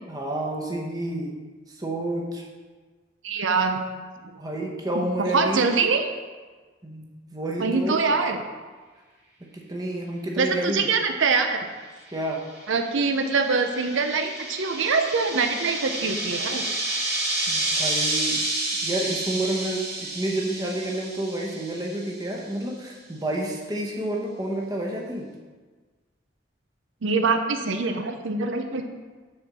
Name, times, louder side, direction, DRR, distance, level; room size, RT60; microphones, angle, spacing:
voice 1, 0.1-1.3 1.7-2.4 4.4-5.6 6.8-7.0 7.3-8.2 9.4-10.8 12.1-12.5 17.5-18.4 18.8-25.3, right 1 dB, 20° right, -1 dB, 0.9 m, -29 dB
voice 2, 3.2-3.8 4.2-4.4 4.9-5.0 5.3-6.0 7.6-8.4 10.4-11.7 12.7-16.6 27.0-28.8, right 4 dB, 85° right, 6 dB, 0.6 m, -24 dB
sound 1, 12.3-22.1, right 2 dB, 50° right, 2.5 m, -30 dB
6.5 x 4.4 x 6.1 m, 1.4 s
head